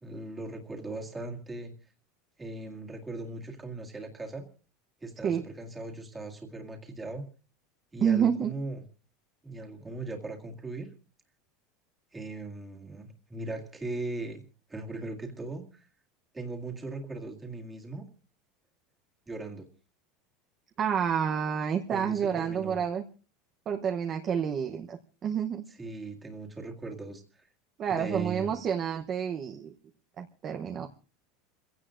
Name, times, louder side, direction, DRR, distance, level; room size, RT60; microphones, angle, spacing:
voice 1, 0.0-1.7 2.4-4.4 5.0-7.3 7.9-8.8 9.4-10.9 12.1-14.4 14.7-15.9 16.3-18.1 19.3-19.7 21.9-22.8 25.7-27.5 27.9-28.6, right 2 dB, 10° right, 2 dB, 2.0 m, -39 dB
voice 2, 8.0-8.5 20.8-23.0 23.7-25.6 27.8-29.7 30.2-30.9, right 8 dB, 25° right, 4 dB, 0.8 m, -29 dB
28.5 x 16.5 x 2.5 m, 0.36 s
supercardioid pair, 175°, 0 cm